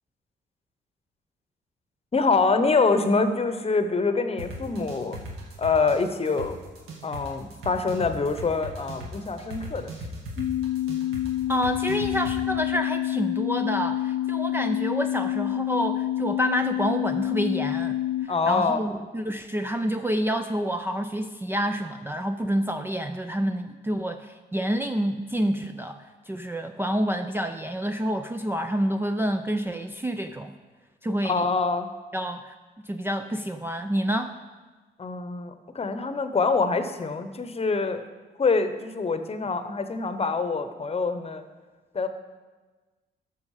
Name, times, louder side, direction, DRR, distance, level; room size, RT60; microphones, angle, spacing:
voice 1, 2.1-5.2 5.6-6.6 7.0-9.9 18.3-18.8 31.2-31.9 35.0-38.0 38.4-41.4 41.9-42.1, left 4 dB, 30° left, 9 dB, 0.9 m, -25 dB
sound 1, 4.4-12.4, right 1 dB, 85° right, 2.0 m, -37 dB
sound 2, 10.4-18.3, left 13 dB, 50° left, 0.4 m, -27 dB
voice 2, 11.5-30.5 31.0-31.4 32.1-32.5 32.9-34.3, equal, 10° right, 6 dB, 0.5 m, -28 dB
13.0 x 6.3 x 4.9 m, 1.3 s
cardioid pair, 90°, 20 cm